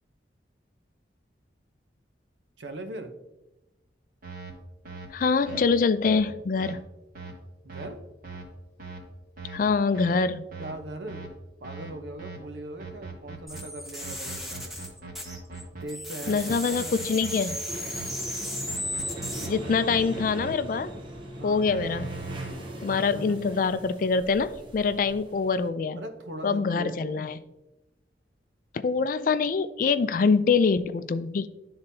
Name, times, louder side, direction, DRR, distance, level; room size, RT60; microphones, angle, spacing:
voice 1, 2.6-3.1 7.6-8.0 10.6-11.3 11.6-14.8 15.7-17.1 21.4-21.7 23.0-23.4 26.0-27.4, right 1 dB, 85° right, 6 dB, 0.9 m, -40 dB
sound 1, 4.2-4.5 4.8-5.1 5.5-5.6 6.0-6.2 6.6-6.7 7.1-7.3 7.7-7.9 8.2-8.4 8.8-9.0 9.4-9.6 9.9-10.1 10.5-10.7 11.1-11.3 11.6-11.9 12.2-12.4 12.8-13.6 14.0-15.8 16.2-18.1 18.7-20.5 21.7-22.5, right 4 dB, 50° right, 1.5 m, -40 dB
voice 2, 5.1-6.8 9.5-10.5 16.3-17.6 19.4-20.9 21.4-22.1 22.8-26.0 26.4-27.3 28.8-31.5, left 5 dB, 50° left, 12 dB, 0.3 m, -25 dB
sound 2, 13.5-15.6 15.9-19.5, left 1 dB, ahead, 0.9 m, -35 dB
sound 3, 17.7-25.7, right 1 dB, 30° right, 0.9 m, -40 dB
11.5 x 3.9 x 2.7 m, 0.98 s
head